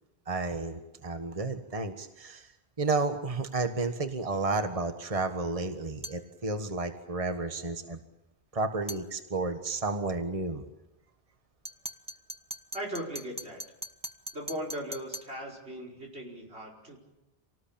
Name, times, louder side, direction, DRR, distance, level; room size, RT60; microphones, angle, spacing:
voice 1, 0.3-2.5 2.8-8.0 8.5-10.6, right 3 dB, 35° right, 7 dB, 1.6 m, -32 dB
sound 1, 6.0-6.3 8.9-9.1 11.6-15.4, right 1 dB, 5° right, 1.2 m, -41 dB
voice 2, 12.7-13.6 14.3-17.0, equal, 90° right, 1 dB, 5.4 m, -38 dB
27.0 x 19.0 x 8.8 m, 0.96 s
omnidirectional pair, 1.1 m